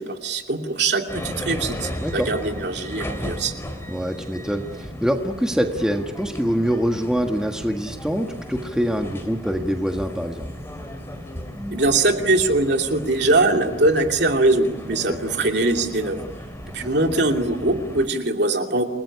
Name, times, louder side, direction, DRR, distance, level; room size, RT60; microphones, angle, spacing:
voice 1, 0.0-3.5 11.7-16.2 16.7-18.9, right 2 dB, 55° right, 3 dB, 2.7 m, -21 dB
sound 1, 1.1-18.1, equal, 15° left, 3.0 m, -35 dB
voice 2, 2.0-2.3 3.9-10.5 15.1-15.3 16.8-16.9, equal, 5° right, 3 dB, 1.6 m, -25 dB
29.0 x 20.0 x 9.9 m, 1.2 s
head